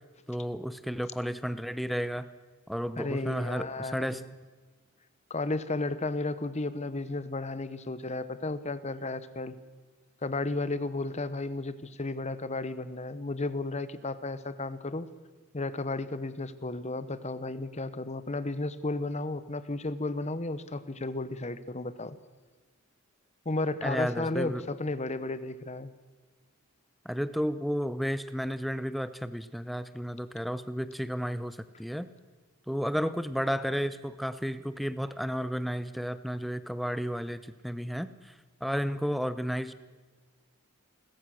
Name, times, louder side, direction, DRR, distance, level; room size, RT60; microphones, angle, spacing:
voice 1, 0.3-2.3 2.7-4.2 23.8-24.6 27.0-32.1 32.7-38.3 38.6-39.7, equal, ahead, 13 dB, 0.7 m, -32 dB
voice 2, 3.0-4.2 5.3-9.6 10.2-15.1 15.5-22.2 23.4-25.9, left 2 dB, 30° left, 14 dB, 1.0 m, -33 dB
29.5 x 14.5 x 6.4 m, 1.4 s
head